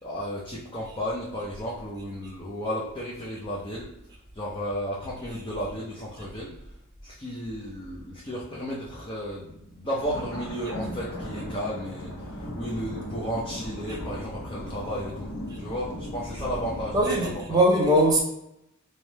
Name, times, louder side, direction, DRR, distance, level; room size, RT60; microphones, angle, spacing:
voice 1, 0.0-3.9 4.3-6.5 7.0-12.1 12.4-15.3 15.6-17.6, equal, 25° left, -6 dB, 0.6 m, -33 dB
sound 1, 10.0-17.4, equal, 70° left, 1.0 m, -37 dB
voice 2, 16.9-18.2, right 1 dB, 20° right, -3 dB, 0.7 m, -20 dB
3.3 x 2.4 x 4.1 m, 0.80 s
head